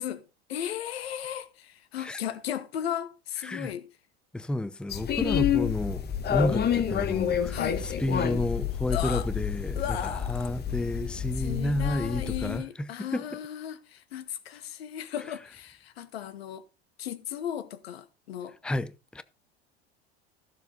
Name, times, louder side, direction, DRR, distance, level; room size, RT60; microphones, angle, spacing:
voice 1, 0.0-3.9 7.5-7.8 8.9-9.3 9.8-10.5 11.3-16.6 17.0-18.5, left 10 dB, 70° left, 1.5 m, -36 dB
voice 2, 4.3-13.2 18.6-19.2, left 1 dB, 5° left, 0.7 m, -31 dB
sound 1, 4.9-12.6, left 9 dB, 30° left, 1.4 m, -29 dB
15.0 x 7.2 x 4.0 m
hypercardioid pair, 80°, 31 cm